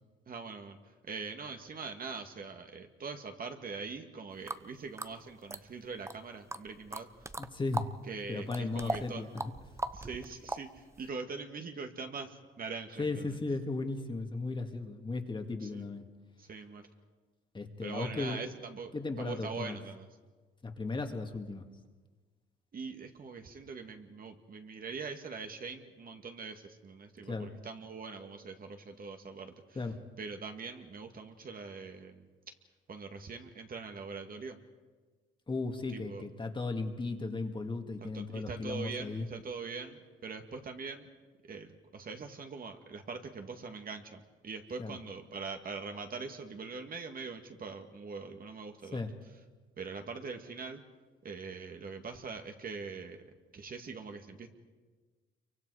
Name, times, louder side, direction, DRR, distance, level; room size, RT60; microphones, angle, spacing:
voice 1, 0.3-0.8 1.0-7.1 8.0-9.2 9.9-13.4 15.6-15.8 16.4-16.8 17.8-20.1 22.7-29.8 30.2-32.3 32.9-34.6 35.9-36.3 38.0-41.1 41.5-49.0 49.8-50.8 51.2-53.2 53.5-54.5, right 4 dB, 45° right, 5 dB, 2.0 m, -42 dB
sound 1, 4.5-4.6 5.0-6.2 6.5-7.9 8.2-11.1, right 2 dB, 15° right, 0.8 m, -39 dB
voice 2, 7.4-7.9 8.3-9.4 13.0-16.0 17.5-18.4 18.9-19.8 20.6-21.7 27.2-27.5 29.8-30.0 35.5-39.3 44.8-45.0 48.9-49.1, left 3 dB, 25° left, 4 dB, 2.1 m, -36 dB
28.0 x 24.0 x 4.9 m, 1.4 s
cardioid pair, 90°, 20 cm